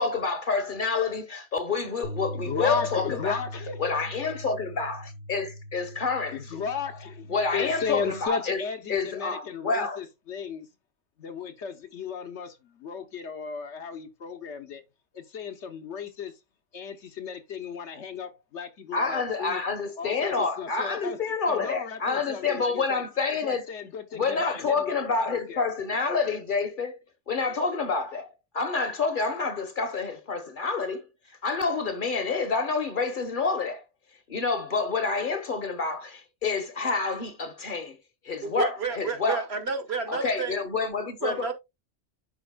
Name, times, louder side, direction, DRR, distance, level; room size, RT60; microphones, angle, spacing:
voice 1, 0.0-3.4 3.8-6.4 7.3-8.6 8.9-10.0 18.9-23.7 24.1-27.0 27.3-31.1 31.4-33.8 34.3-38.0 38.2-39.4 40.1-41.5, left 4 dB, 45° left, 1.1 m, -28 dB
Bass guitar, 2.0-8.3, equal, 90° right, 2.3 m, -40 dB
voice 2, 2.3-3.9 6.3-10.7 11.2-14.8 15.1-16.4 16.7-19.6 20.0-21.2 21.5-23.0 23.4-25.7, left 6 dB, 70° left, 1.3 m, -35 dB
voice 3, 38.4-40.6 41.2-41.5, right 4 dB, 60° right, 1.3 m, -30 dB
11.0 x 4.3 x 2.3 m
omnidirectional pair, 1.2 m